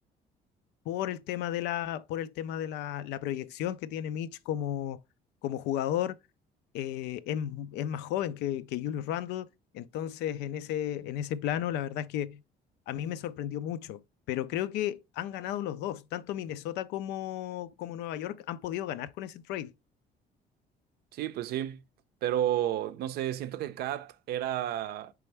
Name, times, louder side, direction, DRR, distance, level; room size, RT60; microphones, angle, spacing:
voice 1, 0.9-5.0 5.4-6.2 6.7-9.5 9.7-12.4 12.9-14.0 14.3-19.7, left 11 dB, 85° left, 0.4 m, -33 dB
voice 2, 21.1-21.8 22.2-25.1, right 12 dB, 70° right, 0.5 m, -31 dB
4.4 x 3.4 x 3.2 m
cardioid pair, 110°, 17 cm